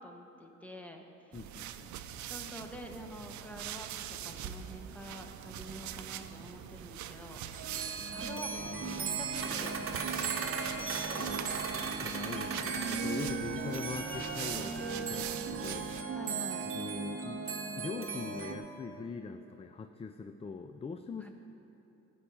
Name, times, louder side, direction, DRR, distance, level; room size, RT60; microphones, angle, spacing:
voice 1, 0.0-1.5 2.2-7.7 8.0-10.7 11.1-11.6 12.5-12.7 16.1-16.7 21.2-21.3, equal, 5° left, 3 dB, 1.3 m, -48 dB
voice 2, 1.3-1.9 8.7-9.0 11.2-11.4 12.0-16.2 16.7-17.5 17.8-21.3, left 4 dB, 20° left, 8 dB, 0.4 m, -42 dB
sound 1, 1.3-16.0, right 11 dB, 70° right, 0.6 m, -43 dB
sound 2, 3.9-4.0 4.2-6.2 6.5-6.6 7.1-7.2 7.5-18.5, right 5 dB, 45° right, 1.1 m, -36 dB
13.0 x 5.4 x 8.8 m, 2.9 s
cardioid pair, 90°, 30 cm